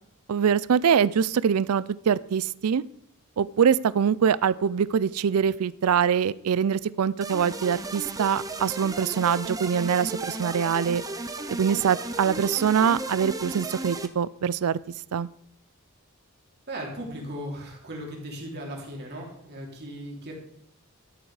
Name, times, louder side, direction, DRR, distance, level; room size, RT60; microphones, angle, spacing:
voice 1, 0.3-2.8 3.4-11.0 11.5-14.8 15.1-15.3, right 7 dB, 75° right, 19 dB, 0.4 m, -24 dB
sound 1, 7.2-14.1, right 2 dB, 15° right, 0.8 m, -35 dB
voice 2, 16.7-20.3, equal, 50° right, -1 dB, 3.2 m, -37 dB
13.0 x 8.0 x 4.9 m, 0.74 s
head